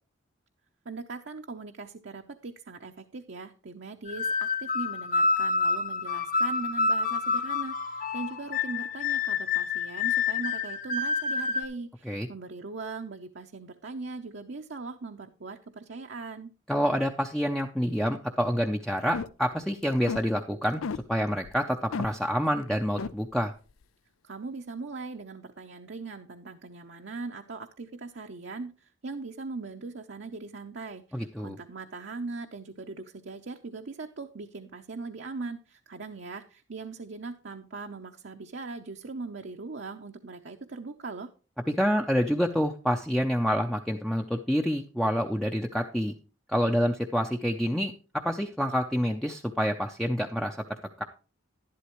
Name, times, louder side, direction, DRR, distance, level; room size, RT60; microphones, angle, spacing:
voice 1, 0.9-16.5 24.2-41.3, right 3 dB, 60° right, 4 dB, 0.7 m, -40 dB
sound 1, 4.1-11.6, left 4 dB, 40° left, 0.8 m, -28 dB
voice 2, 16.7-20.8 21.1-23.5 31.1-31.6 41.7-46.1 46.5-50.6 51.0-51.1, equal, ahead, 2 dB, 0.5 m, -27 dB
sound 2, 19.0-19.5 19.8-20.3 20.8-21.0 21.4-21.6 21.9-22.1 22.6-22.7 23.0-23.1, left 5 dB, 90° left, 0.5 m, -33 dB
11.5 x 11.5 x 3.0 m, 0.35 s
head